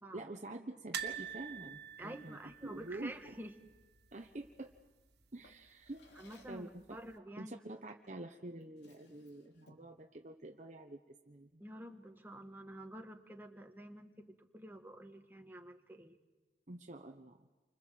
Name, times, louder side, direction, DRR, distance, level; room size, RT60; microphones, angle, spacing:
voice 1, 0.1-3.4 4.1-4.7 5.3-6.0 6.5-7.0 7.4-11.0 11.3-11.6 16.7-17.5, right 2 dB, 40° right, 4 dB, 1.1 m, -47 dB
sound 1, 0.9-4.0 4.2-4.5 4.7-4.8 6.0-6.6 7.1-7.2, right 8 dB, 65° right, 1.8 m, -45 dB
voice 2, 2.0-3.5 6.1-7.9 11.6-14.3 14.5-16.2, right 1 dB, 10° right, 4 dB, 1.7 m, -49 dB
Drawer open or close, 5.4-6.7 7.9-8.1 8.5-10.0, left 1 dB, 70° left, 3.2 m, -64 dB
29.5 x 25.0 x 7.6 m, 1.2 s
head